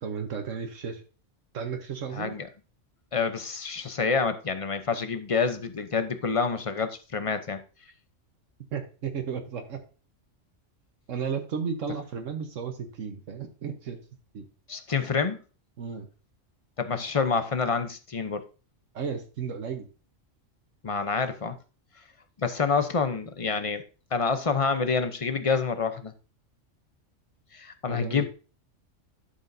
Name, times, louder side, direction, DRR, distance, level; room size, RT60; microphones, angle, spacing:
voice 1, 0.0-1.0 1.5-2.4 8.7-9.8 11.1-14.0 14.3-14.5 15.8-16.1 18.9-19.9 27.9-28.3, right 6 dB, 75° right, 1.4 m, -33 dB
voice 2, 2.1-2.5 3.1-7.6 14.7-15.4 16.8-18.4 20.8-21.6 22.4-23.8 24.1-26.1 27.5-28.2, left 5 dB, 35° left, 0.6 m, -27 dB
11.5 x 6.8 x 2.6 m
omnidirectional pair, 1.3 m